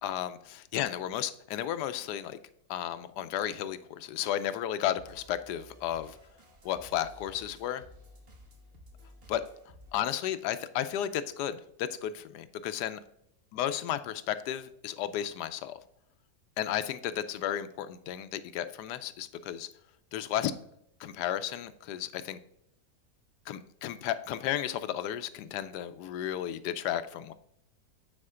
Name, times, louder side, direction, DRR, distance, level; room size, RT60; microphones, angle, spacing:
voice 1, 0.0-2.4 2.7-6.2 6.6-7.8 9.3-9.4 9.9-13.0 13.5-15.8 16.6-19.7 20.1-20.5 21.0-22.4 23.5-27.3, left 11 dB, 85° left, 12 dB, 1.2 m, -33 dB
sound 1, 4.9-9.9, left 1 dB, 40° right, 1.4 m, -55 dB
8.6 x 4.4 x 3.7 m, 0.78 s
omnidirectional pair, 1.7 m